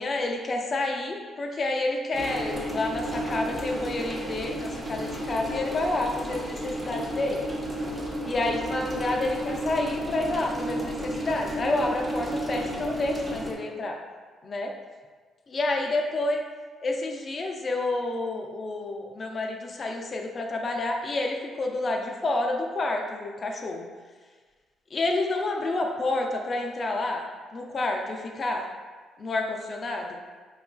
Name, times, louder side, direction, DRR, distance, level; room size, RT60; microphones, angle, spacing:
voice 1, 0.0-7.4 8.2-14.0 14.4-14.7 15.5-16.4 16.8-23.9 24.9-27.2 27.5-28.6 29.2-30.2, left 2 dB, 40° left, 2 dB, 0.4 m, -29 dB
sound 1, 2.1-13.5, right 1 dB, 25° right, 0.7 m, -32 dB
4.7 x 2.4 x 2.2 m, 1.4 s
cardioid pair, 90°, 0 cm